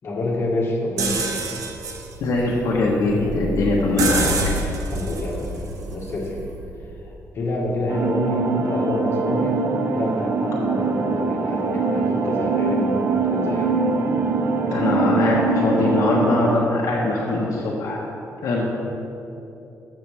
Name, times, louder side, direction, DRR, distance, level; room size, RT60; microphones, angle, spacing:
voice 1, 0.0-1.3 4.9-6.4 7.3-9.6 9.9-13.8, left 2 dB, 40° left, -3 dB, 1.6 m, -27 dB
sound 1, 1.0-6.8, right 2 dB, 70° right, 1.1 m, -28 dB
voice 2, 2.2-4.3 14.7-18.0 18.4-18.6, left 2 dB, 65° left, -3 dB, 1.2 m, -21 dB
sound 2, 7.9-16.6, right 4 dB, 40° right, 0.6 m, -23 dB
14.0 x 6.6 x 3.4 m, 2.9 s
cardioid pair, 160°, 6 cm